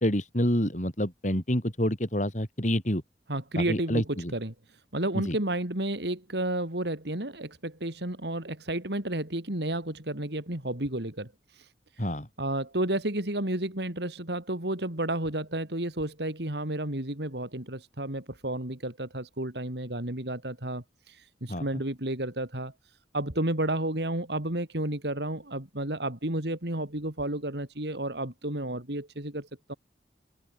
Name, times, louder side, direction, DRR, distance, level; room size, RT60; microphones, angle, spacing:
voice 1, 0.0-3.0 3.6-4.3 5.2-5.4 12.0-12.3 21.5-21.6, equal, 45° left, 6.2 m, -28 dB
voice 2, 3.3-4.5 4.9-11.7 12.4-22.7 23.1-29.7, right 1 dB, 70° right, 3.5 m, -32 dB
head